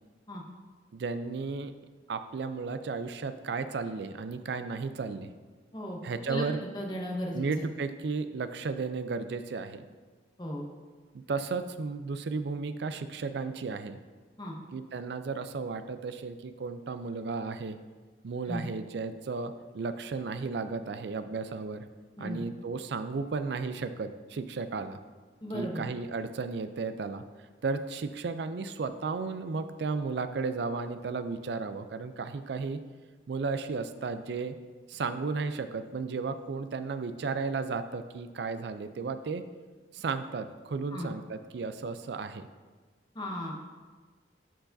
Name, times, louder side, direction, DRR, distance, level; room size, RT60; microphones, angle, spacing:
voice 1, 0.9-1.7 2.1-5.3 6.0-6.6 7.3-9.8 11.1-14.0 14.7-17.8 18.2-21.8 22.2-25.0 25.5-27.2 27.6-32.8 33.3-34.6 34.9-39.4 39.9-42.5, right 4 dB, 60° right, 10 dB, 0.4 m, -34 dB
voice 2, 6.7-7.6 10.4-10.7 14.4-14.5 18.5-18.6 22.2-22.4 25.4-25.8 40.9-41.1 43.1-43.6, equal, 25° left, -1 dB, 0.9 m, -35 dB
11.0 x 4.7 x 2.6 m, 1.4 s
head